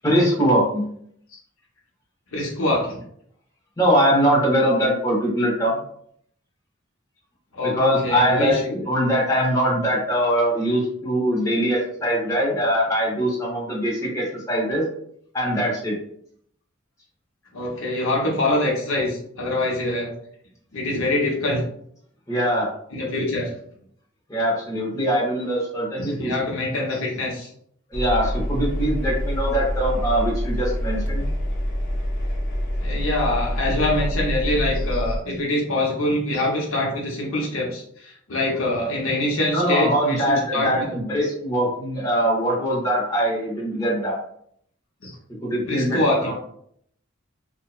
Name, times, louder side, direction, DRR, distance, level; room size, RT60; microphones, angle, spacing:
voice 1, 0.0-0.8 3.8-5.8 7.6-8.6 8.9-14.8 15.3-15.9 22.3-22.7 24.3-26.3 27.9-31.3 39.5-44.2 45.4-46.3, equal, 15° left, -6 dB, 0.9 m, -22 dB
voice 2, 2.3-3.0 7.5-8.8 17.5-20.1 20.7-21.6 22.9-23.5 26.0-27.5 32.8-40.9 45.0-45.2 45.7-46.4, left 1 dB, 80° left, -3 dB, 0.7 m, -24 dB
Engine, 27.9-35.2, equal, 40° left, 0.4 m, -26 dB
2.7 x 2.1 x 2.3 m, 0.67 s
head